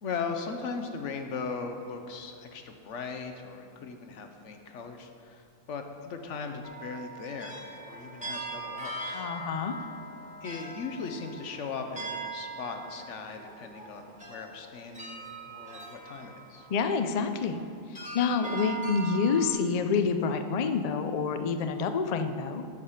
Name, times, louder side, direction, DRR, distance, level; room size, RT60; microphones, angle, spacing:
voice 1, 0.0-7.6 7.9-9.3 10.4-16.7, left 5 dB, 65° left, 6 dB, 1.1 m, -38 dB
sound 1, 6.6-17.2 17.9-19.5, right 2 dB, 5° right, 1.4 m, -41 dB
voice 2, 9.1-9.8 16.7-17.6 17.9-22.6, left 5 dB, 85° left, 8 dB, 0.3 m, -28 dB
8.6 x 6.5 x 5.7 m, 2.4 s
omnidirectional pair, 1.4 m